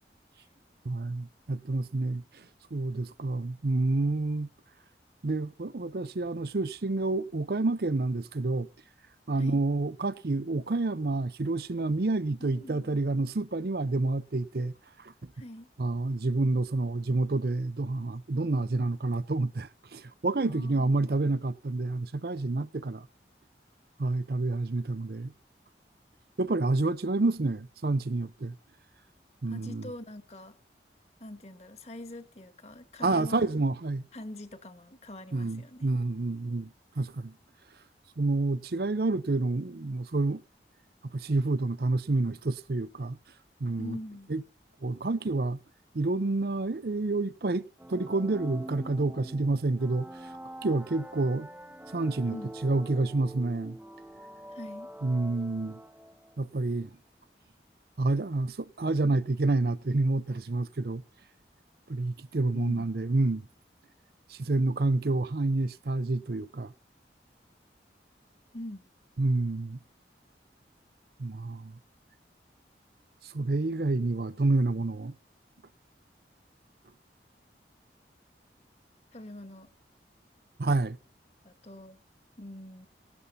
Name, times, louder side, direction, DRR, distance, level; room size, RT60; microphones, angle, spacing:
voice 1, 0.8-2.4 2.7-4.5 5.2-8.7 9.3-14.7 15.0-15.3 15.8-23.1 24.0-25.3 26.4-28.5 29.4-29.9 33.0-34.1 35.3-36.7 37.0-37.3 38.2-40.4 41.1-43.2 43.6-44.0 44.3-44.4 44.8-45.6 45.9-47.6 47.9-50.3 50.6-51.5 51.9-52.4 52.6-53.8 55.0-55.8 56.4-57.0 58.0-61.0 61.9-63.4 64.3-66.7 69.2-69.8 71.2-71.8 73.2-75.1 80.6-81.0, right 2 dB, 60° right, 0.6 m, -28 dB
voice 2, 12.4-12.9 15.3-15.7 20.4-20.9 29.5-30.6 31.2-33.5 34.1-35.9 43.8-44.3 52.3-52.5 54.5-54.9 62.5-62.9 68.5-68.9 79.1-79.7 81.4-82.0 82.4-82.9, left 1 dB, 35° left, 1.7 m, -43 dB
sound 1, 47.8-56.4, right 1 dB, 10° right, 0.8 m, -45 dB
17.0 x 12.5 x 4.2 m
head